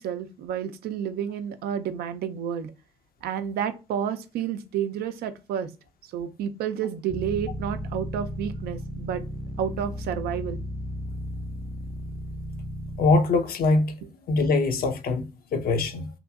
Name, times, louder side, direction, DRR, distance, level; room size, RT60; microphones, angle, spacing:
voice 1, 0.0-2.7 3.2-5.7 6.1-9.2 9.6-10.6, right 8 dB, 60° right, 0.4 m, -30 dB
sound 1, 7.1-13.2, equal, ahead, 0.5 m, -34 dB
voice 2, 13.0-14.0 14.3-16.1, left 3 dB, 55° left, 0.6 m, -23 dB
2.9 x 2.6 x 2.3 m
hypercardioid pair, 45°, 18 cm